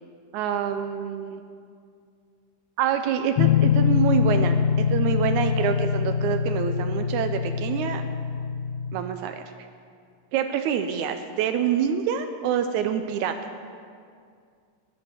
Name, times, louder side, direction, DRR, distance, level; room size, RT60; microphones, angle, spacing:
voice 1, 0.3-1.4 2.8-8.0 8.9-9.4 10.3-13.5, right 8 dB, 85° right, 7 dB, 2.1 m, -26 dB
sound 1, 3.4-9.0, left 7 dB, 80° left, 1.7 m, -23 dB
14.5 x 11.0 x 7.0 m, 2.2 s
omnidirectional pair, 3.4 m